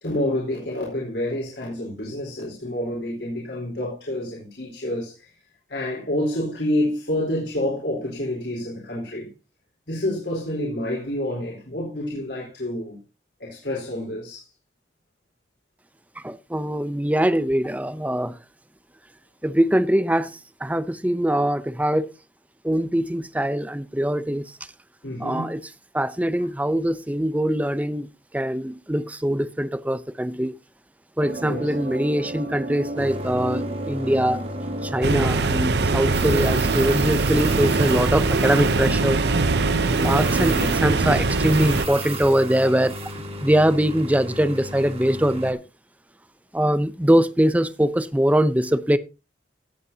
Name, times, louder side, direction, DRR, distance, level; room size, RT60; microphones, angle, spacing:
voice 1, 0.0-5.3 5.7-9.3 9.9-13.0 13.4-14.5 25.0-25.6 31.4-31.7 40.0-40.3, left 1 dB, 75° left, 4.2 m, -28 dB
voice 2, 16.2-18.4 19.4-22.1 22.6-24.4 25.2-25.6 25.9-28.1 28.3-30.5 31.2-34.4 34.8-39.2 39.9-43.0 43.4-45.6 46.5-49.0, right 1 dB, 10° right, 0.5 m, -22 dB
sound 1, 31.2-41.2, right 1 dB, 50° right, 1.3 m, -32 dB
sound 2, 33.0-45.5, right 1 dB, 35° right, 2.0 m, -34 dB
sound 3, 35.0-41.9, right 3 dB, 70° right, 0.7 m, -22 dB
17.0 x 8.3 x 2.8 m
head